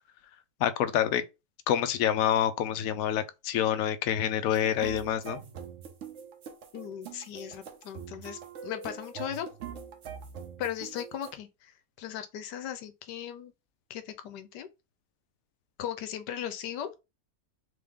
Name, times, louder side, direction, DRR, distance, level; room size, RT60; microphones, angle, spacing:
voice 1, 0.6-1.2 1.7-5.4, left 10 dB, 70° left, 0.9 m, -27 dB
sound 1, 4.5-11.3, right 7 dB, 55° right, 0.9 m, -44 dB
voice 2, 6.7-9.5 10.6-11.7 12.0-13.5 13.9-14.7 15.8-17.0, left 10 dB, 90° left, 1.3 m, -37 dB
3.4 x 3.4 x 3.5 m
omnidirectional pair, 1.8 m